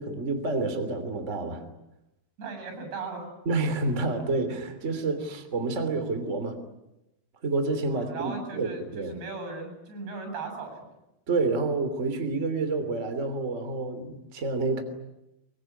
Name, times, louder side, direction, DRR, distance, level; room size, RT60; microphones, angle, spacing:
voice 1, 0.0-1.6 3.4-6.6 7.4-9.1 11.3-14.8, right 3 dB, 20° right, 8 dB, 2.8 m, -29 dB
voice 2, 2.4-3.3 7.9-10.9, right 4 dB, 85° right, 6 dB, 10.5 m, -37 dB
24.0 x 23.5 x 9.8 m, 0.91 s
omnidirectional pair, 4.7 m